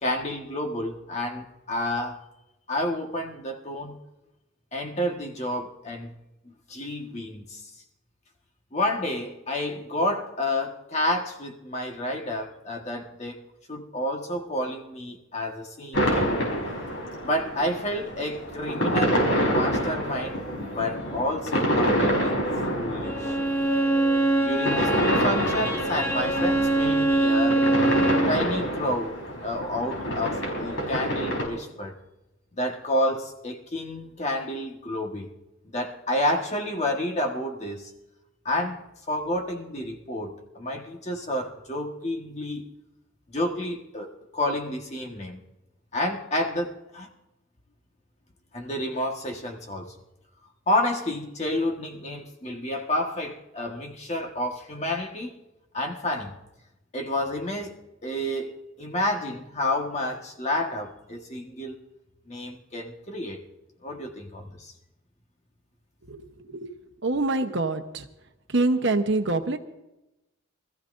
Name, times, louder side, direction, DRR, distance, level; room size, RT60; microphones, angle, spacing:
voice 1, 0.0-2.2 2.7-4.0 4.7-6.1 6.4-7.6 8.7-16.3 17.2-22.4 22.7-23.4 24.4-27.6 28.3-31.9 32.5-35.3 35.7-37.9 38.4-38.8 39.1-42.7 43.3-45.4 45.9-47.1 48.5-49.9 50.7-55.3 55.7-56.3 56.9-57.7 58.0-61.8 62.3-63.4 63.8-64.7, left 1 dB, 30° left, 2 dB, 1.5 m, -30 dB
sound 1, 15.9-31.5, equal, 65° left, 4.5 m, -27 dB
Bowed string instrument, 23.0-28.4, right 2 dB, 10° left, 0.8 m, -24 dB
voice 2, 66.1-66.7 67.0-68.1 68.5-69.6, right 2 dB, 55° right, 6 dB, 1.0 m, -25 dB
25.0 x 14.5 x 2.6 m, 0.93 s
head